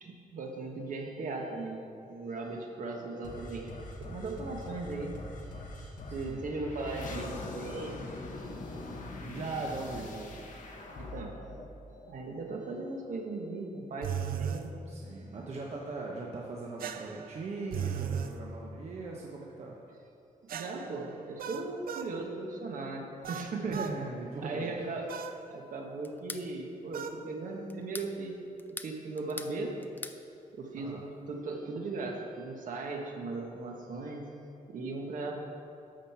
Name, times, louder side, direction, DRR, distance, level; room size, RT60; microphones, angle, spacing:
voice 1, 0.0-8.1 8.4-9.0 11.0-11.4 12.1-14.7 15.1-15.2 20.5-23.8 24.4-25.0 25.5-28.4 28.7-29.8 30.5-34.2 34.7-35.3, right 3 dB, 65° right, 1 dB, 1.4 m, -38 dB
sound 1, 3.2-12.6, left 2 dB, 60° left, 1.2 m, -43 dB
voice 2, 9.2-10.5 14.9-19.8 23.7-24.7 30.8-31.0, right 3 dB, 50° right, -2 dB, 1.0 m, -39 dB
sound 2, 14.0-14.7 16.8-18.4 20.5-22.1 23.2-24.0 25.1-25.4 26.9-27.2, right 8 dB, 90° right, 0.6 m, -37 dB
sound 3, 26.0-26.5 27.7-28.1 28.6-29.6 29.8-30.2, left 2 dB, 15° left, 0.4 m, -42 dB
13.0 x 5.2 x 5.9 m, 2.6 s
wide cardioid pair, 170°, 15 cm